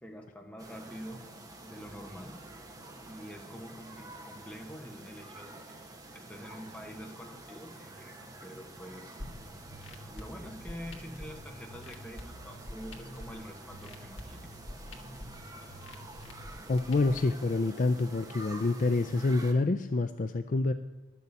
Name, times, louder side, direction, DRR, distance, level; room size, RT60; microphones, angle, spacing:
voice 1, 0.0-1.2 1.6-2.5 3.0-5.9 6.1-9.2 9.5-9.7 10.1-14.6, equal, 5° left, 2 dB, 1.3 m, -46 dB
sound 1, 0.6-19.5, right 2 dB, 20° right, 1.1 m, -48 dB
sound 2, 9.2-17.2, left 1 dB, 90° left, 1.7 m, -47 dB
voice 2, 16.7-20.7, left 3 dB, 40° left, 9 dB, 0.4 m, -27 dB
11.5 x 6.9 x 8.4 m, 1.1 s
head